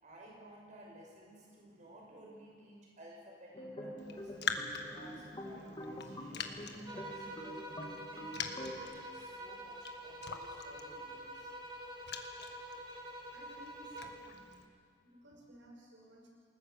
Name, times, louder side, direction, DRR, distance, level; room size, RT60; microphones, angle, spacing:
voice 1, 0.0-4.3 4.8-7.5 8.1-11.5, right 1 dB, 45° right, -2 dB, 6.0 m, -56 dB
sound 1, 3.5-8.8, equal, 25° left, 2.1 m, -46 dB
Raindrop, 4.0-14.6, left 6 dB, 60° left, 1.5 m, -45 dB
sound 2, 6.8-14.3, right 1 dB, 25° right, 2.8 m, -47 dB
voice 2, 13.3-14.6 15.0-16.3, right 1 dB, 85° right, -1 dB, 5.9 m, -57 dB
28.5 x 20.0 x 6.6 m, 2.1 s
head